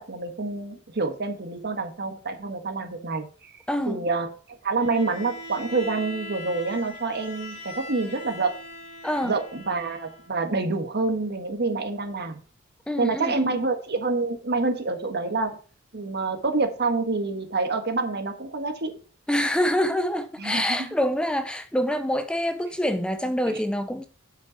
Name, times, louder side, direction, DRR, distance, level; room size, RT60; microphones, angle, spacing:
voice 1, 0.0-3.5 3.9-8.6 9.2-12.4 13.0-15.6 15.9-19.0 20.4-20.9 23.4-23.6, right 3 dB, 55° right, 1.5 m, -27 dB
voice 2, 3.7-4.0 9.0-9.4 12.9-13.6 19.3-24.1, equal, 5° left, 0.5 m, -26 dB
Bowed string instrument, 4.8-10.4, left 1 dB, 50° left, 4.4 m, -41 dB
7.9 x 5.7 x 5.9 m
head